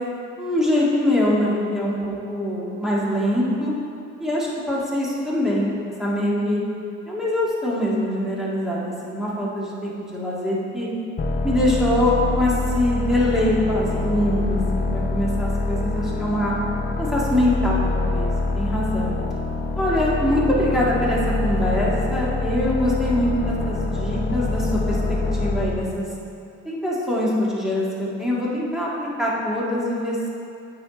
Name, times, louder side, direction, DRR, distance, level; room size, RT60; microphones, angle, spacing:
voice 1, 0.4-3.7 4.2-6.6 7.1-10.9 11.4-16.5 17.0-19.2 19.8-26.1 26.7-30.3, left 1 dB, ahead, -7 dB, 1.8 m, -23 dB
sound 1, 11.2-25.9, left 3 dB, 30° left, 0.7 m, -25 dB
8.4 x 5.0 x 4.1 m, 2.6 s
cardioid pair, 90°, 30 cm